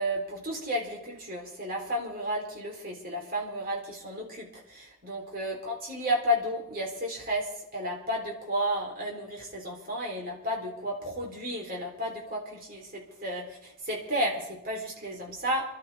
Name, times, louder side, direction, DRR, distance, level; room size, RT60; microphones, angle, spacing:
voice 1, 0.0-15.8, equal, 45° right, 0 dB, 3.6 m, -32 dB
25.5 x 12.0 x 3.5 m, 0.84 s
head